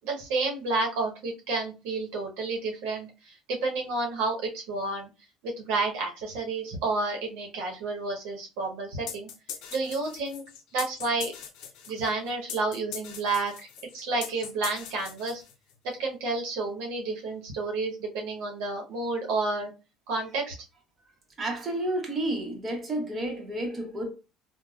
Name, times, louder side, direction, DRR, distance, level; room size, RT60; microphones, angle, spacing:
voice 1, 0.0-5.1 5.4-9.3 9.7-10.4 10.7-11.3 11.9-13.7 13.9-15.4 15.8-19.7 20.1-20.6, right 3 dB, 80° right, 0.8 m, -30 dB
sound 1, 9.1-15.8, left 8 dB, 70° left, 0.5 m, -41 dB
voice 2, 21.4-24.1, right 1 dB, 25° right, 0.9 m, -31 dB
3.4 x 2.1 x 2.3 m
supercardioid pair, 110°, 0 cm